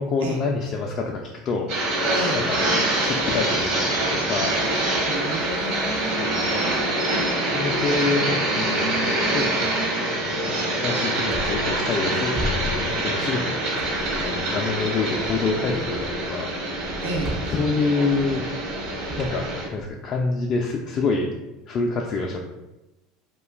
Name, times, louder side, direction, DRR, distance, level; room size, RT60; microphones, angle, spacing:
voice 1, 0.0-2.1 2.3-2.6 3.0-4.6 6.2-6.9 7.5-9.6 10.2-13.6 14.2-17.0 17.5-18.5 19.2-21.3 21.7-22.4, left 4 dB, 45° left, -1 dB, 0.3 m, -27 dB
sound 1, 1.7-19.7, right 1 dB, 60° right, 1.0 m, -25 dB
voice 2, 5.0-6.4 17.0-17.3, right 2 dB, 90° right, -1 dB, 0.5 m, -31 dB
sound 2, 11.3-12.1 12.3-13.4 13.8-14.6 15.1-20.2, left 1 dB, 30° right, 0.5 m, -35 dB
2.3 x 2.2 x 3.3 m, 1.0 s
hypercardioid pair, 90°, 0 cm